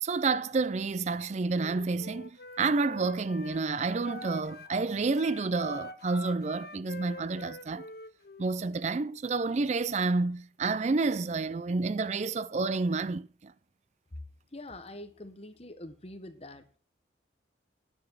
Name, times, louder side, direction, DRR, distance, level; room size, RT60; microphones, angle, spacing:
voice 1, 0.0-7.9 8.4-13.5, right 3 dB, 40° right, 0.4 m, -29 dB
Wind instrument woodwind instrument, 1.5-4.8 5.1-8.5, left 1 dB, 60° left, 0.8 m, -45 dB
voice 2, 14.5-16.8, left 1 dB, 35° left, 1.3 m, -45 dB
9.9 x 6.0 x 7.2 m
head